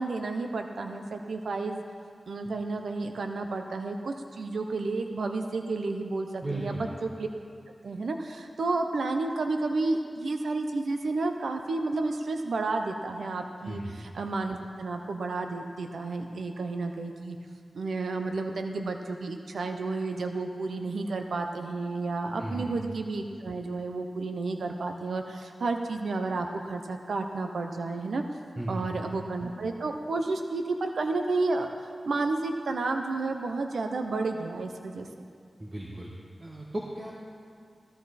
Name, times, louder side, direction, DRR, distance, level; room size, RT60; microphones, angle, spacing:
voice 1, 0.0-1.8 2.3-7.3 7.8-17.4 17.7-28.2 28.7-31.7 32.0-35.1, right 3 dB, 85° right, 4 dB, 0.7 m, -31 dB
voice 2, 6.4-6.9 13.6-13.9 22.4-22.7 28.6-28.9 35.6-36.1 36.4-37.1, right 1 dB, 30° right, -2 dB, 1.4 m, -35 dB
15.0 x 13.5 x 4.2 m, 2.3 s
wide cardioid pair, 70°, 0 cm